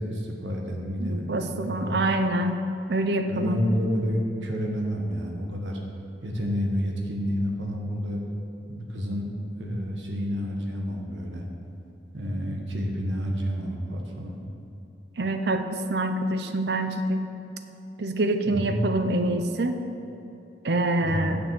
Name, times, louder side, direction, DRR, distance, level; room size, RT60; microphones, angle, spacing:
voice 1, 0.0-2.0 3.3-5.8 6.2-8.2 8.7-9.3 9.6-11.4 12.1-14.4 18.4-18.8 21.0-21.3, equal, 75° right, 1 dB, 1.4 m, -29 dB
voice 2, 1.0-3.6 15.2-17.3 18.0-19.8 20.6-21.4, right 1 dB, 60° right, 7 dB, 0.6 m, -26 dB
6.9 x 6.8 x 7.3 m, 2.9 s
head